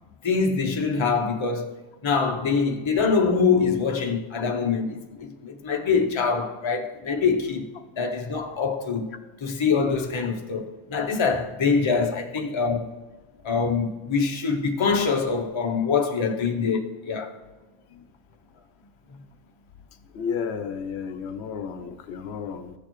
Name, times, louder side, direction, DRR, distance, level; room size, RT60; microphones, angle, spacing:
voice 1, 0.2-1.7 2.0-7.7 8.0-9.1 9.4-12.9 13.4-17.4, left 5 dB, 30° left, 0.7 m, -24 dB
voice 2, 20.1-22.7, left 6 dB, 80° left, 0.8 m, -32 dB
15.0 x 6.5 x 3.0 m
omnidirectional pair, 1.1 m